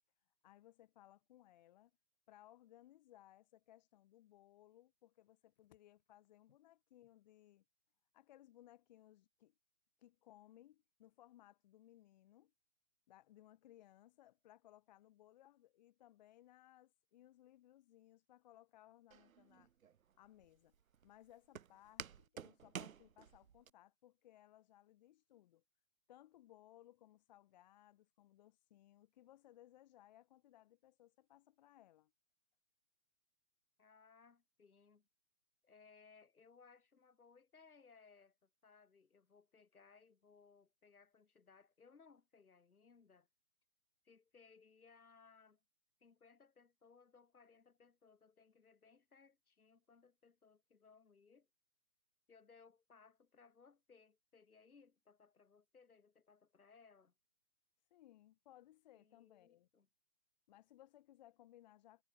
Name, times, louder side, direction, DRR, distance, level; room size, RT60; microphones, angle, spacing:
voice 1, 0.4-1.9 2.3-7.6 8.1-9.5 10.0-12.5 13.1-19.7 20.2-20.7 21.0-25.6 26.1-32.1 57.9-59.7 60.5-62.0, left 13 dB, 30° left, 1.5 m, -64 dB
Walk footsteps, 19.1-23.7, right 8 dB, 65° right, 1.0 m, -52 dB
voice 2, 33.8-35.1 35.6-43.3 44.0-45.6 46.0-51.5 52.3-57.1 58.9-59.9, left 5 dB, 75° left, 6.4 m, -66 dB
hypercardioid pair, 145°, 44 cm